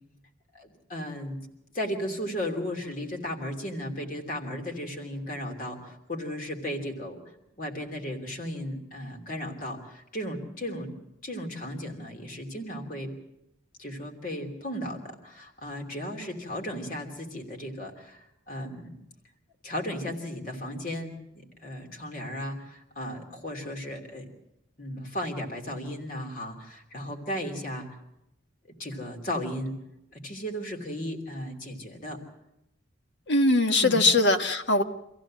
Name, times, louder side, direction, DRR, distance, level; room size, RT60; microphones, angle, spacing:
voice 1, 0.5-1.4 1.7-7.2 7.6-10.9 11.2-13.1 13.8-19.0 19.6-24.3 24.8-28.0 28.8-29.8 30.1-32.2 33.8-34.0, equal, 45° left, 2 dB, 3.0 m, -35 dB
voice 2, 33.3-34.8, left 2 dB, 70° left, 6 dB, 1.5 m, -21 dB
25.5 x 15.5 x 7.5 m, 0.87 s
head